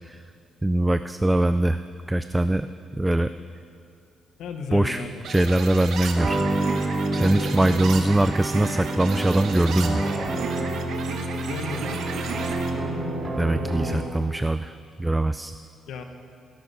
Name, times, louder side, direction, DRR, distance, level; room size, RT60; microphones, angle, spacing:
voice 1, 0.6-1.8 2.1-2.7 3.0-3.3 4.7-5.0 5.3-6.5 7.1-10.0 13.4-15.5, right 1 dB, 10° right, 11 dB, 0.3 m, -22 dB
voice 2, 4.4-5.3 7.1-7.5 11.5-12.0 15.9-16.0, left 5 dB, 80° left, 6 dB, 1.3 m, -34 dB
sound 1, 5.2-12.7, right 5 dB, 70° right, 1.4 m, -34 dB
sound 2, 6.1-14.2, right 2 dB, 25° right, 2.4 m, -28 dB
17.0 x 11.0 x 5.7 m, 2.4 s
cardioid pair, 135°, 0 cm